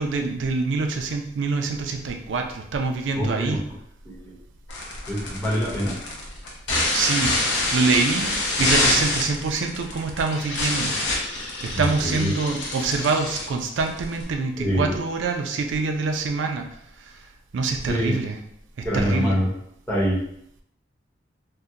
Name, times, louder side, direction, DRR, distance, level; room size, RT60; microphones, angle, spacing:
voice 1, 0.0-3.6 6.9-7.4 7.7-11.0 11.6-16.7 17.0-17.2 17.5-18.4 18.8-19.4, right 4 dB, 85° right, 4 dB, 0.4 m, -25 dB
voice 2, 3.2-3.6 4.0-4.3 5.1-6.0 11.7-12.3 14.6-15.0 17.9-18.1 18.8-19.5 19.9-20.2, equal, 10° left, -7 dB, 0.9 m, -25 dB
sound 1, 4.7-14.2, left 2 dB, 80° left, 0.8 m, -26 dB
2.8 x 2.1 x 3.6 m, 0.73 s
head